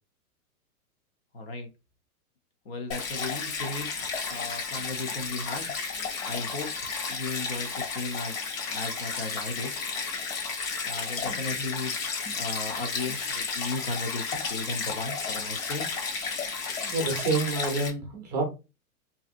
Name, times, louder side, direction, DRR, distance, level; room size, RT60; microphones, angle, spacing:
voice 1, 1.3-1.7 2.7-5.7 6.3-6.7 7.1-9.7 10.9-12.1 12.4-15.9, left 3 dB, 40° left, 4 dB, 0.6 m, -36 dB
Stream, 2.9-17.9, left 5 dB, 60° left, 1.2 m, -33 dB
voice 2, 16.8-18.4, right 3 dB, 30° right, 2 dB, 0.6 m, -28 dB
2.7 x 2.7 x 2.5 m, 0.27 s
hypercardioid pair, 165°, 46 cm